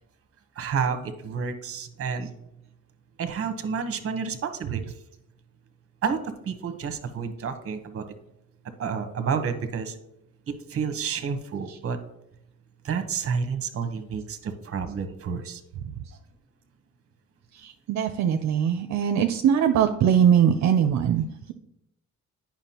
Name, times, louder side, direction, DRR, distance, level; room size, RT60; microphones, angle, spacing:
voice 1, 0.6-2.3 3.2-4.8 6.0-8.1 8.8-10.0 10.5-12.0 12.8-15.6, right 6 dB, 50° right, 9 dB, 0.9 m, -30 dB
voice 2, 17.5-21.5, right 8 dB, 65° right, 7 dB, 0.5 m, -22 dB
8.9 x 5.8 x 2.9 m, 0.82 s
cardioid pair, 90°, 30 cm